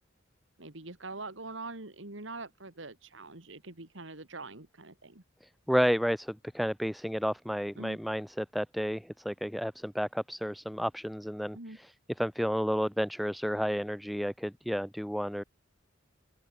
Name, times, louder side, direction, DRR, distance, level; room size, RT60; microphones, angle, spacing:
voice 1, 0.6-5.2 7.8-8.0 11.5-11.8, right 3 dB, 70° right, 2.6 m, -43 dB
voice 2, 5.7-11.9 12.2-15.4, equal, ahead, 0.3 m, -31 dB
open air
head